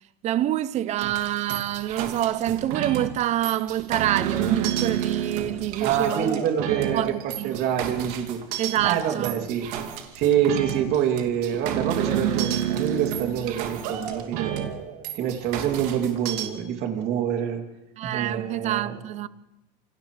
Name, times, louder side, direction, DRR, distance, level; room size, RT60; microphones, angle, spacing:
voice 1, 0.2-6.5 6.9-7.6 8.6-9.5 18.0-19.3, right 12 dB, 35° right, 0.7 m, -27 dB
sound 1, 1.0-16.5, right 10 dB, 70° right, 2.8 m, -30 dB
voice 2, 5.8-9.7 10.1-14.5 15.1-17.6 18.0-19.0, right 9 dB, 50° right, 3.1 m, -26 dB
29.0 x 28.0 x 3.4 m
supercardioid pair, 135°, 21 cm